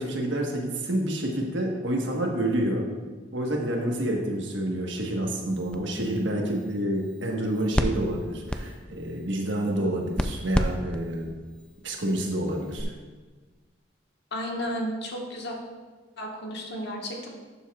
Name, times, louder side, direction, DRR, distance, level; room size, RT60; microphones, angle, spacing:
voice 1, 0.0-2.9 3.3-11.3 11.8-12.9, right 1 dB, 65° right, 0 dB, 1.3 m, -28 dB
sound 1, 5.3-12.8, equal, 5° left, 0.3 m, -34 dB
voice 2, 14.3-15.5 16.2-17.3, equal, 60° left, 0 dB, 1.4 m, -33 dB
12.0 x 7.1 x 2.4 m, 1.4 s
head